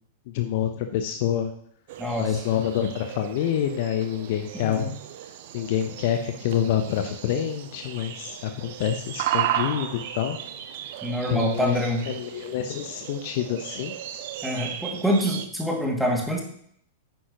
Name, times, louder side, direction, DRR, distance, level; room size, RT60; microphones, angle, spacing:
voice 1, 0.3-1.5 2.2-4.9 5.5-10.4 11.3-13.9, left 10 dB, 50° left, 7 dB, 0.8 m, -27 dB
sound 1, 1.9-15.5, right 12 dB, 50° right, 0.8 m, -35 dB
voice 2, 2.0-2.3 4.5-4.9 11.0-12.0 14.4-16.4, equal, ahead, -1 dB, 2.3 m, -26 dB
10.0 x 9.3 x 3.0 m, 0.66 s
figure-of-eight pair, 95°, 0 cm